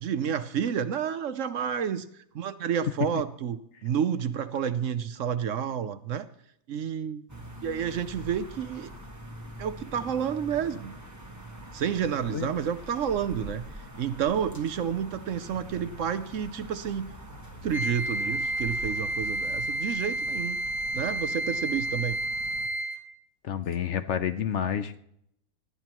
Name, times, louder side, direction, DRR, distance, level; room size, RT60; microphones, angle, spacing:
voice 1, 0.0-2.1 2.3-6.3 6.7-7.3 7.6-8.9 9.6-11.0 11.7-13.7 14.0-17.1 17.6-20.6 20.9-22.2, right 8 dB, 65° right, 12 dB, 1.0 m, -30 dB
sound 1, 7.3-22.7, right 1 dB, 10° right, 1.3 m, -45 dB
Wind instrument woodwind instrument, 17.7-23.1, right 1 dB, 40° right, 1.3 m, -30 dB
voice 2, 23.4-25.0, left 8 dB, 60° left, 10 dB, 0.9 m, -29 dB
19.5 x 13.0 x 3.0 m, 0.74 s
omnidirectional pair, 1.5 m